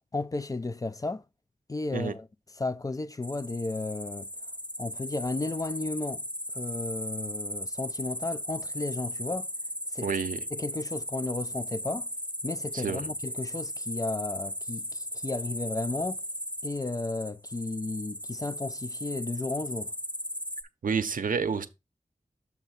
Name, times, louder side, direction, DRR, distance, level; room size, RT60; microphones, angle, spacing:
voice 1, 0.1-1.2 1.7-2.3 2.6-4.3 4.8-6.2 6.5-9.5 9.9-10.1 10.5-12.1 12.4-16.2 16.6-19.9, left 2 dB, 25° left, 0.3 m, -33 dB
sound 1, 3.2-20.6, equal, 10° left, 0.8 m, -37 dB
voice 2, 10.0-10.4 12.7-13.1 20.8-21.7, right 6 dB, 80° right, 0.6 m, -29 dB
7.1 x 2.7 x 5.7 m
wide cardioid pair, 65°, 14 cm